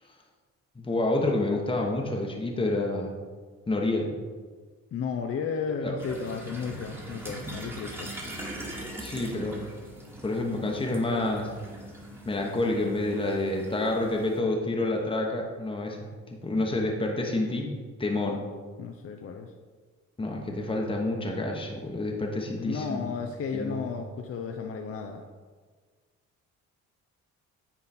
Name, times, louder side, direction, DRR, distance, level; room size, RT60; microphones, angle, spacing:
voice 1, 0.8-3.1 3.7-4.1 5.8-5.9 9.0-9.6 10.2-11.5 12.2-18.4 20.2-23.1 23.5-23.9, left 2 dB, 15° left, 0 dB, 1.1 m, -28 dB
voice 2, 4.9-8.1 18.8-19.5 22.6-25.2, left 5 dB, 50° left, 3 dB, 0.6 m, -33 dB
sound 1, 6.0-14.4, right 1 dB, 5° right, 1.5 m, -41 dB
9.8 x 3.8 x 4.3 m, 1.5 s
cardioid pair, 90°, 30 cm